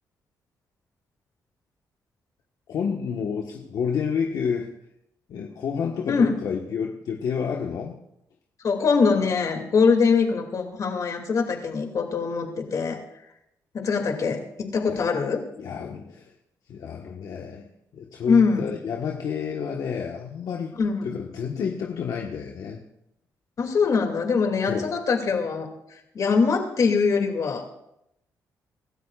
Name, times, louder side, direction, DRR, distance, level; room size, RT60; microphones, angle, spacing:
voice 1, 2.7-4.7 5.3-8.0 14.9-15.0 15.6-16.3 16.7-17.7 17.9-22.8 24.6-24.9, left 6 dB, 75° left, 0 dB, 1.4 m, -30 dB
voice 2, 8.6-13.0 13.7-15.4 18.3-18.7 20.8-21.2 23.6-25.7 26.1-27.7, left 5 dB, 55° left, 4 dB, 2.6 m, -23 dB
25.0 x 13.0 x 2.5 m, 0.81 s
cardioid pair, 100°, 7 cm